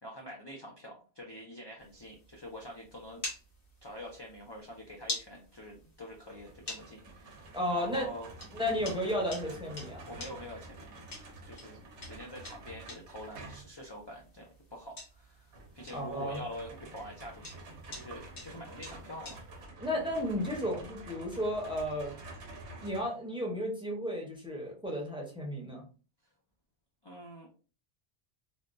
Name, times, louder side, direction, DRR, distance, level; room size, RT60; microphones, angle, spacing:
voice 1, 0.0-3.2 3.8-8.3 10.1-11.1 11.4-17.6 17.9-19.4 27.0-27.5, equal, 35° left, -1 dB, 0.4 m, -46 dB
sound 1, 1.8-19.6, left 2 dB, 75° left, 1.4 m, -48 dB
sound 2, 6.3-13.8 15.5-23.0, right 2 dB, 85° right, 1.0 m, -49 dB
voice 2, 7.5-8.1 8.5-10.0 15.9-16.4 19.8-22.1 22.8-25.8, equal, 5° right, -1 dB, 0.7 m, -33 dB
3.5 x 2.2 x 2.5 m, 0.36 s
omnidirectional pair, 1.1 m